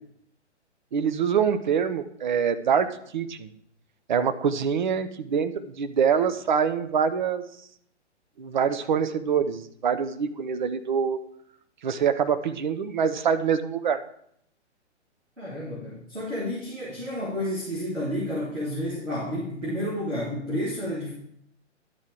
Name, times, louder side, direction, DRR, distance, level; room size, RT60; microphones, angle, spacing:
voice 1, 0.9-3.5 4.1-7.4 8.4-11.2 11.8-14.0, right 7 dB, 40° right, 10 dB, 0.6 m, -25 dB
voice 2, 15.4-21.1, left 1 dB, 90° right, -6 dB, 2.6 m, -31 dB
11.5 x 4.6 x 4.8 m, 0.70 s
figure-of-eight pair, 120°, 35 cm